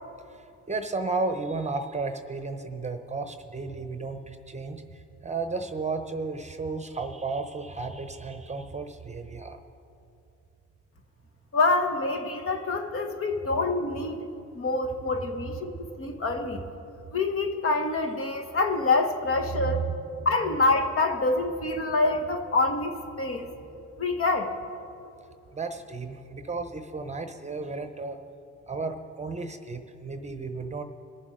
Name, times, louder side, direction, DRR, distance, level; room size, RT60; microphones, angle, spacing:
voice 1, 0.7-9.6 19.5-20.6 25.5-28.2 28.7-30.8, right 4 dB, 25° right, 8 dB, 0.8 m, -33 dB
voice 2, 11.5-14.2 14.5-15.7 16.0-16.6 17.1-19.9 20.2-23.5 24.0-24.5, left 3 dB, 45° left, 5 dB, 1.3 m, -26 dB
22.0 x 7.3 x 5.0 m, 2.6 s
cardioid pair, 90°, 30 cm